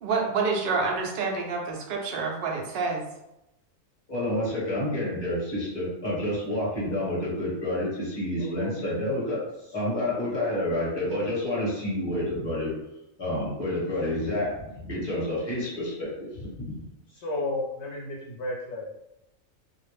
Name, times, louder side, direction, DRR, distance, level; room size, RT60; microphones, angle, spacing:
voice 1, 0.0-3.0, right 4 dB, 65° right, 0 dB, 0.6 m, -28 dB
voice 2, 4.1-9.4 9.7-12.7 13.2-14.5 14.8-16.8, left 1 dB, 20° left, -6 dB, 0.9 m, -29 dB
voice 3, 8.4-9.0 17.1-18.9, left 2 dB, 60° left, -4 dB, 0.8 m, -33 dB
2.4 x 2.0 x 3.1 m, 0.87 s
omnidirectional pair, 1.4 m